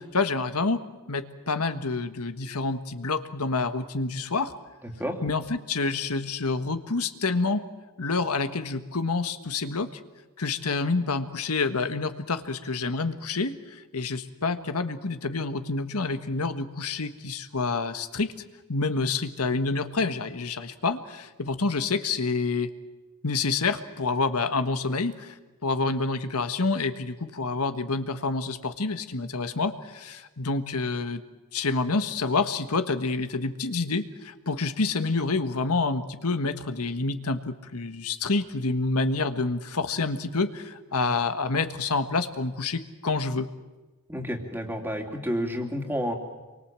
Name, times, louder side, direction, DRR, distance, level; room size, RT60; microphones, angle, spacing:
voice 1, 0.0-4.5 5.2-7.6 8.0-10.0 10.4-18.3 18.7-22.7 23.2-25.3 25.6-31.2 31.5-43.5, left 3 dB, 85° left, 9 dB, 1.5 m, -28 dB
voice 2, 44.1-46.1, equal, 10° right, 3 dB, 2.7 m, -30 dB
28.5 x 24.0 x 7.6 m, 1.2 s
head